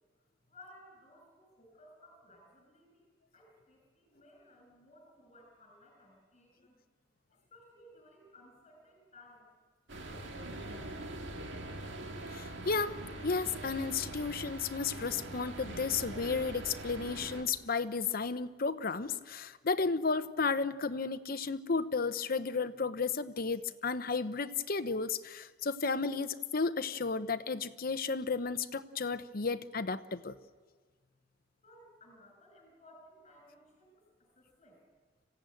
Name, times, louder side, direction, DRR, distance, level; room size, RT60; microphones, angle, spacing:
voice 1, 0.4-6.8 7.3-9.5 10.0-11.1 31.6-34.8, left 1 dB, 35° left, 1 dB, 6.4 m, -59 dB
sound 1, 9.9-17.4, right 1 dB, 80° right, 2.1 m, -43 dB
voice 2, 12.3-13.0 13.2-30.3, left 4 dB, 55° left, 11 dB, 0.9 m, -33 dB
26.0 x 16.0 x 9.1 m, 1.5 s
head